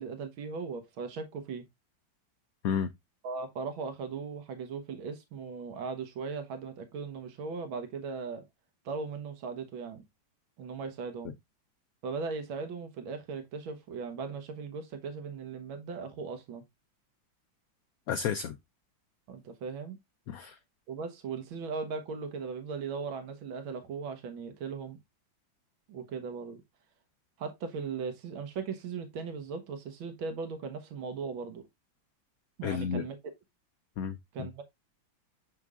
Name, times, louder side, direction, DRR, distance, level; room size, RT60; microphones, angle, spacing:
voice 1, 0.0-1.7 3.2-8.4 8.9-10.0 10.6-11.3 12.0-16.7 19.3-20.0 20.9-25.0 25.9-26.6 27.4-31.6 32.6-33.3 34.3-34.6, right 5 dB, 90° right, 1.9 m, -38 dB
voice 2, 18.1-18.6 20.3-20.6 32.6-33.0 34.0-34.5, left 7 dB, 85° left, 0.7 m, -32 dB
6.7 x 6.0 x 2.4 m
omnidirectional pair, 2.1 m